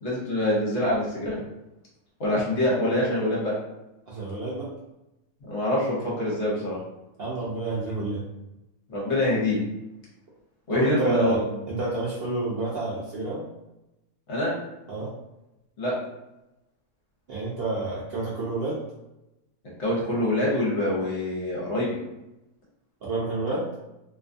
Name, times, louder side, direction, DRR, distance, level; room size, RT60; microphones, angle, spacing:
voice 1, 0.0-1.4 2.2-3.6 5.5-6.8 8.9-9.6 10.7-11.4 14.3-14.6 15.8-15.9 19.8-22.0, left 1 dB, 60° left, -5 dB, 1.0 m, -25 dB
voice 2, 4.1-4.7 7.2-8.2 10.7-11.4 11.7-13.4 14.9-15.1 17.3-18.8 23.0-23.7, right 2 dB, 60° right, -7 dB, 0.6 m, -29 dB
2.5 x 2.3 x 2.5 m, 0.94 s
omnidirectional pair, 1.5 m